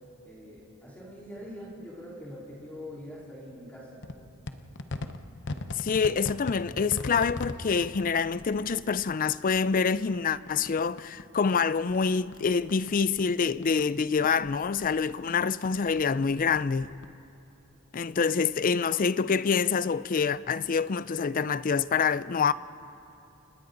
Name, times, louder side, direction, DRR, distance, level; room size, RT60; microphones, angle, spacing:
voice 1, 0.2-4.0, equal, 10° left, 4.1 m, -43 dB
sound 1, 4.0-11.3 11.5-13.9 14.2-17.1, left 2 dB, 55° left, 0.9 m, -41 dB
voice 2, 5.7-16.9 17.9-22.5, left 5 dB, 40° left, 0.4 m, -26 dB
29.5 x 26.5 x 4.0 m
head